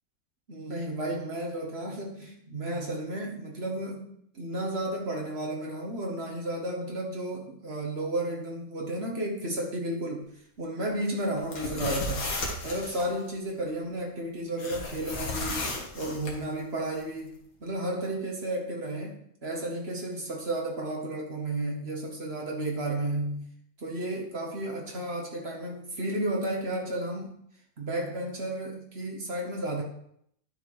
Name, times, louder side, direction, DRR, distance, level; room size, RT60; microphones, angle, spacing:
voice 1, 0.5-10.3 10.6-12.3 12.6-15.7 15.9-23.4 23.8-27.4 27.8-29.8, right 1 dB, 45° right, -1 dB, 1.4 m, -33 dB
sound 1, 11.4-13.1 14.6-16.3, left 2 dB, 75° left, 1.9 m, -34 dB
10.5 x 4.1 x 4.8 m, 0.70 s
omnidirectional pair, 1.5 m